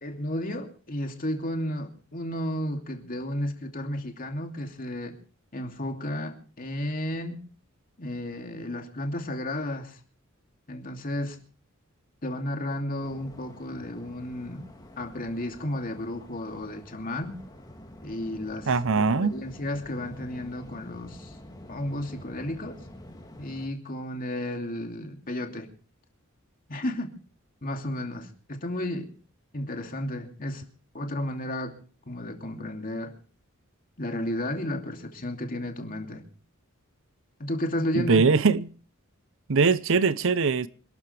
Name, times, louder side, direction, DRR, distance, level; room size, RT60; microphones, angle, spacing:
voice 1, 0.0-5.2 5.5-7.4 8.0-10.0 10.7-11.4 12.2-14.7 15.0-17.4 18.0-18.7 19.2-21.4 21.7-22.8 23.4-25.7 26.7-27.1 27.6-29.1 29.5-30.6 30.9-31.8 32.1-33.2 34.0-36.2 37.4-38.3, left 1 dB, 40° left, 2.7 m, -33 dB
Waves surf, 13.0-23.7, left 1 dB, 20° left, 2.5 m, -47 dB
voice 2, 18.7-19.4 37.9-38.7 39.5-40.7, right 4 dB, 65° right, 0.7 m, -22 dB
27.0 x 13.0 x 3.4 m
head